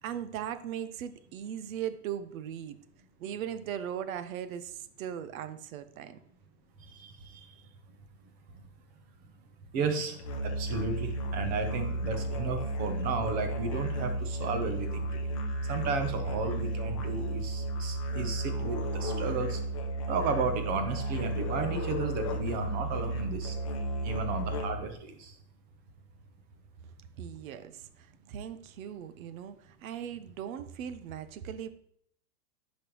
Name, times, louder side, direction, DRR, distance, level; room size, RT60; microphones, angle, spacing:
voice 1, 0.0-2.8 3.2-6.2 7.2-7.7 27.2-31.7, right 9 dB, 55° right, 12 dB, 0.8 m, -39 dB
voice 2, 6.9-7.5 9.7-15.2 15.7-19.6 20.1-23.6 24.0-25.3, right 4 dB, 20° right, 7 dB, 0.6 m, -34 dB
Musical instrument, 10.2-24.9, right 1 dB, 25° left, 0.3 m, -33 dB
10.0 x 5.3 x 3.0 m, 0.68 s
supercardioid pair, 160°, 48 cm